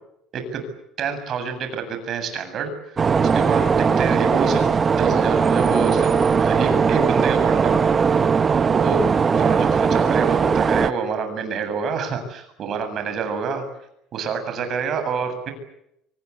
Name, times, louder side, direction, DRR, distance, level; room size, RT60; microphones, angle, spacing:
voice 1, 0.3-0.7 1.0-2.7 3.2-8.2 8.7-9.0 9.3-13.6 14.1-15.5, right 5 dB, 45° right, 8 dB, 8.0 m, -27 dB
sound 1, 3.0-10.9, right 6 dB, 25° right, 1.0 m, -19 dB
26.0 x 24.0 x 8.4 m, 0.76 s
cardioid pair, 135°, 0 cm